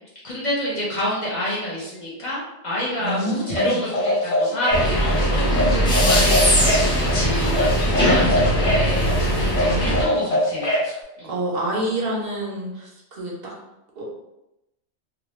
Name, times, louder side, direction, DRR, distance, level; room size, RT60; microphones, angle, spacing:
voice 1, 0.2-6.4 6.7-10.7 11.2-11.3, left 1 dB, 45° left, -7 dB, 1.0 m, -28 dB
voice 2, 3.0-3.8 9.6-10.3 11.2-13.5 14.0-14.1, right 1 dB, 65° right, -3 dB, 0.7 m, -28 dB
sound 1, 3.1-10.9, left 1 dB, 80° left, 1.0 m, -23 dB
sound 2, 4.7-10.1, equal, 5° left, 0.5 m, -20 dB
2.3 x 2.1 x 3.0 m, 0.91 s
omnidirectional pair, 1.1 m